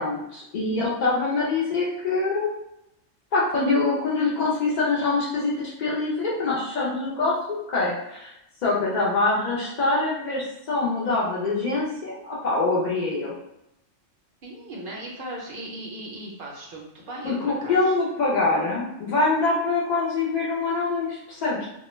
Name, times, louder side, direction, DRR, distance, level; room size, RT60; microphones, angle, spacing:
voice 1, 0.0-2.6 3.3-5.5 5.8-8.3 8.6-13.3 17.2-21.7, left 3 dB, 55° left, -6 dB, 0.5 m, -24 dB
voice 2, 14.4-17.8, right 1 dB, 60° right, -2 dB, 0.6 m, -37 dB
2.2 x 2.1 x 3.0 m, 0.85 s
omnidirectional pair, 1.3 m